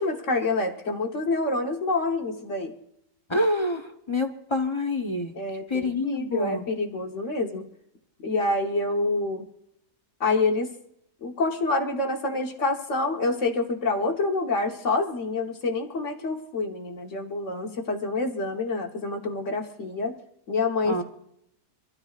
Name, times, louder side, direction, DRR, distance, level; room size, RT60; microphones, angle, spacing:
voice 1, 0.0-2.7 5.3-7.7 8.2-9.4 10.2-10.7 11.2-20.1 20.5-21.0, left 3 dB, 50° left, 2 dB, 1.5 m, -27 dB
voice 2, 3.3-5.4 5.7-6.7 20.8-21.0, left 2 dB, 25° left, 4 dB, 0.7 m, -27 dB
26.0 x 13.5 x 2.5 m, 0.77 s
omnidirectional pair, 1.7 m